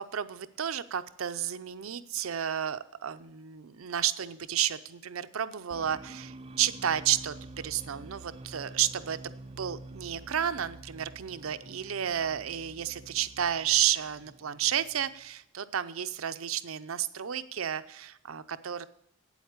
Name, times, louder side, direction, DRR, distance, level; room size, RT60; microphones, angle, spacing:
voice 1, 0.1-7.3 7.6-18.9, right 10 dB, 85° right, 13 dB, 0.6 m, -31 dB
sound 1, 5.7-15.3, right 2 dB, 30° right, 0.4 m, -48 dB
8.8 x 8.2 x 6.6 m, 0.78 s
head